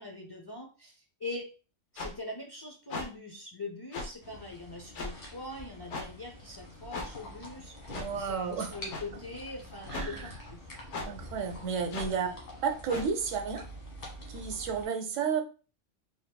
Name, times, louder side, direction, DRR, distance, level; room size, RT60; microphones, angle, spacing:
voice 1, 0.0-1.5 1.9-10.6 12.0-12.4, left 2 dB, 35° left, 1 dB, 0.4 m, -43 dB
sound 1, 2.0-2.1 2.9-3.1 3.9-4.1 4.9-5.1 5.9-6.1 6.9-7.1 7.9-8.1 8.9-9.0 9.9-10.1 10.9-11.1 11.9-12.1 12.9-13.1, left 2 dB, 70° left, 1.0 m, -36 dB
sound 2, 4.2-14.9, equal, 50° left, 1.5 m, -47 dB
voice 2, 7.9-8.7 9.9-10.2 11.1-12.3 12.6-13.6 14.3-15.4, right 6 dB, 90° right, 6 dB, 1.0 m, -32 dB
3.9 x 3.7 x 2.2 m, 0.36 s
omnidirectional pair, 1.2 m